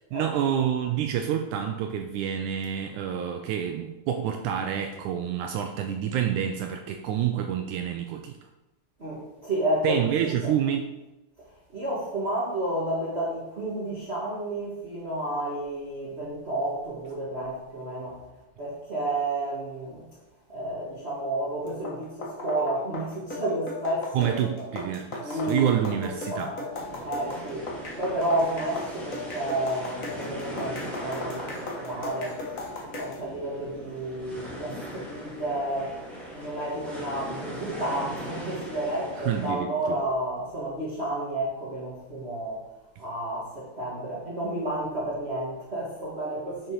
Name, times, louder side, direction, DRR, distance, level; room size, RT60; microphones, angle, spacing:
voice 1, 0.0-8.4 9.8-11.0 24.1-26.5 39.2-40.0, right 9 dB, 80° right, 5 dB, 1.9 m, -28 dB
voice 2, 9.0-10.1 10.4-10.5 11.7-18.2 18.6-20.1 20.5-24.7 25.2-25.7 26.0-26.7 27.0-27.7 28.0-32.6 33.0-36.0 36.3-42.6 43.0-46.7, right 1 dB, 40° right, -5 dB, 0.8 m, -31 dB
sound 1, 21.7-33.2, left 2 dB, 70° left, 0.7 m, -37 dB
sound 2, 26.7-39.5, equal, ahead, 1.7 m, -39 dB
7.0 x 6.4 x 4.6 m, 0.98 s
omnidirectional pair, 3.7 m